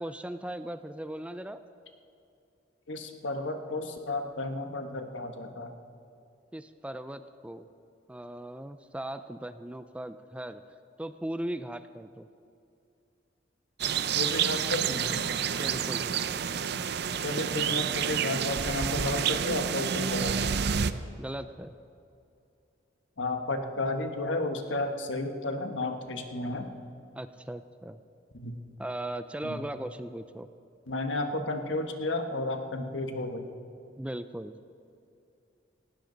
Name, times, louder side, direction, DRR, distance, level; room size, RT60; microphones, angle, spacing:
voice 1, 0.0-1.6 6.5-7.7 8.1-10.6 11.0-12.3 15.6-16.4 21.2-21.7 27.2-28.0 28.8-30.5 34.0-34.6, right 1 dB, 5° right, 11 dB, 0.4 m, -38 dB
voice 2, 2.9-5.8 14.1-15.2 15.5-15.6 17.2-20.5 23.2-26.7 28.3-28.6 29.4-29.6 30.9-33.5, left 2 dB, 75° left, 6 dB, 1.4 m, -32 dB
sound 1, 13.8-20.9, right 7 dB, 60° right, 0.5 m, -29 dB
19.0 x 16.5 x 4.0 m, 2.6 s
head